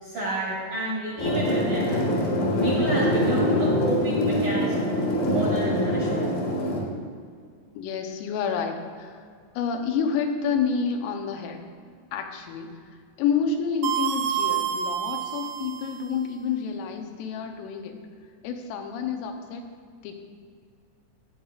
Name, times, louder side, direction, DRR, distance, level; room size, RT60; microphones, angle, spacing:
voice 1, 0.0-2.2 2.6-4.9 5.3-6.3, right 1 dB, 60° right, -7 dB, 2.2 m, -30 dB
sound 1, 1.2-6.8, left 1 dB, 70° left, 3.5 m, -24 dB
voice 2, 7.7-9.2 9.5-11.6 12.1-12.7 13.2-18.0 18.4-19.6 20.0-20.2, left 6 dB, 85° left, 4 dB, 3.4 m, -29 dB
sound 2, 13.8-16.2, right 9 dB, 90° right, 2.5 m, -28 dB
13.0 x 8.8 x 2.4 m, 2.1 s
omnidirectional pair, 5.7 m